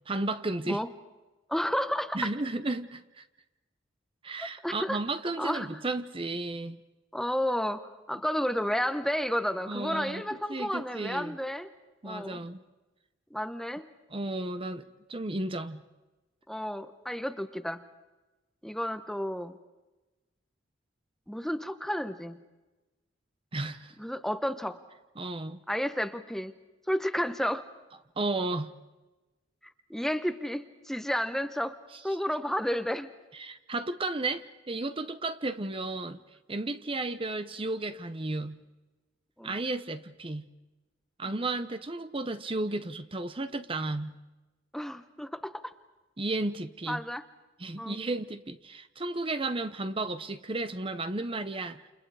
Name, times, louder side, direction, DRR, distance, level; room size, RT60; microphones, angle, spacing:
voice 1, 0.1-0.8 2.1-3.2 4.2-6.8 9.7-10.2 10.5-11.4 12.0-12.6 14.1-14.8 15.1-15.8 23.5-23.9 25.2-25.6 28.2-28.7 33.3-36.2 36.5-38.6 39.4-40.5 41.2-44.2 46.2-47.0 47.6-51.8, right 2 dB, 30° right, 11 dB, 0.9 m, -33 dB
voice 2, 1.5-2.3 4.4-5.0 5.4-5.7 7.1-11.7 12.0-12.4 13.3-13.9 16.5-17.8 18.6-19.6 21.3-22.4 24.0-24.8 25.7-26.5 26.9-27.7 29.9-31.8 32.0-33.1 39.4-39.6 41.2-41.4 44.7-45.7 46.9-47.2 47.8-48.0, equal, ahead, 10 dB, 1.0 m, -31 dB
29.5 x 29.0 x 4.9 m, 1.1 s
head